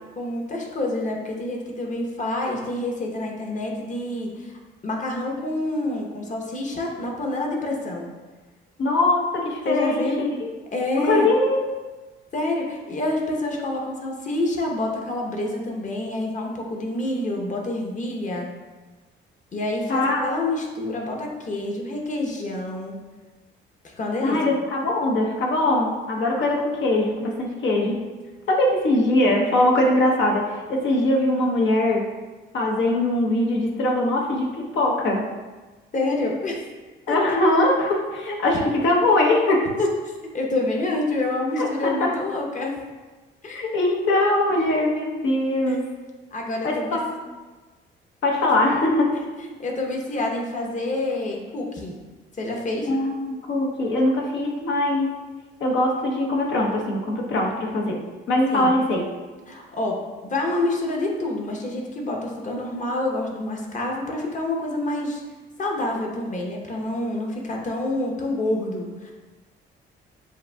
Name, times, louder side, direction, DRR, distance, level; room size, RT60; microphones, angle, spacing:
voice 1, 0.2-4.5 4.8-8.1 9.6-10.3 10.7-11.3 12.3-18.5 19.5-22.9 24.0-24.4 35.9-36.7 37.1-37.4 38.3-38.4 39.8-39.9 40.3-42.7 43.4-43.6 45.7-45.8 46.3-47.0 49.4-51.9 52.4-52.9 58.5-58.7 59.5-59.9 60.2-65.2 65.6-69.1, left 2 dB, 40° left, 0 dB, 1.0 m, -27 dB
voice 2, 8.8-10.5 10.9-11.6 19.9-20.3 24.2-28.0 28.5-32.1 32.5-35.2 37.1-39.7 41.6-42.1 43.5-45.8 46.6-47.1 48.2-49.1 52.9-55.1 55.6-58.0 58.3-59.0, left 1 dB, 70° left, -1 dB, 0.9 m, -22 dB
7.5 x 2.6 x 2.3 m, 1.3 s
cardioid pair, 90°, 20 cm